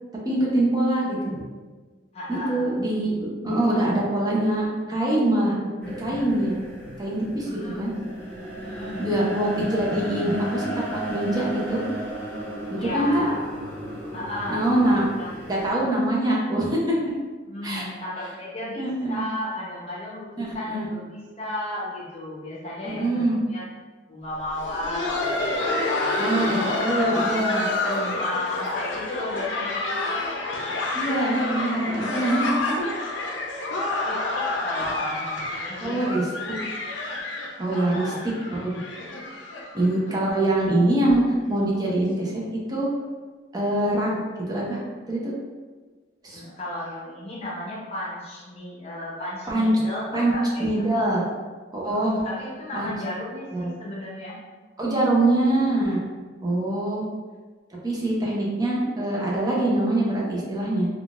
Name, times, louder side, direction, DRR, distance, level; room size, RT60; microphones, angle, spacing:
voice 1, 0.2-1.4 2.3-5.6 6.0-6.6 7.0-7.9 9.0-10.7 11.1-11.8 12.7-13.2 14.5-15.0 15.5-16.8 17.6-17.8 18.8-19.3 20.4-20.9 22.9-23.4 26.2-27.7 30.9-32.9 35.8-36.3 37.6-38.1 38.5-38.8 39.7-41.2 41.5-42.4 42.7-42.9 43.5-44.2 44.5-44.8 45.1-45.3 46.2-46.4 49.5-49.7 50.1-50.3 50.6-51.3 51.7-52.1 52.7-52.9 53.5-53.7 54.8-56.0 56.4-57.0 57.8-60.9, right 1 dB, 20° right, -4 dB, 0.6 m, -24 dB
voice 2, 2.1-2.7 7.4-8.0 8.6-9.4 12.7-13.5 14.1-14.7 15.2-15.3 16.1-16.2 17.5-23.7 24.1-27.3 27.8-30.2 34.0-36.6 37.7-38.3 46.3-50.9 51.9-54.4 56.4-57.0, left 1 dB, 35° left, -6 dB, 0.7 m, -34 dB
sound 1, 5.8-15.7, right 1 dB, 10° left, 1.2 m, -35 dB
Laughter, 24.4-40.1 40.4-40.5 41.1-41.2 41.7-41.9 43.0-43.1, left 2 dB, 70° left, 0.5 m, -29 dB
3.6 x 2.3 x 2.4 m, 1.4 s
head